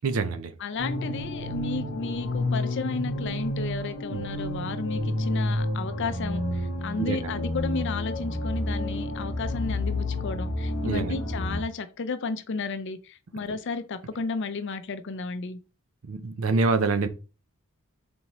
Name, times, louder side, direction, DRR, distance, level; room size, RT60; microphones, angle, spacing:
voice 1, 0.0-0.5 4.1-4.2 7.0-7.3 10.8-11.2 16.0-17.1, right 4 dB, 70° right, 0.5 m, -26 dB
voice 2, 0.6-15.6, left 4 dB, 55° left, 0.5 m, -33 dB
sound 1, 0.8-11.6, left 1 dB, 85° left, 0.8 m, -30 dB
4.1 x 3.5 x 3.0 m
head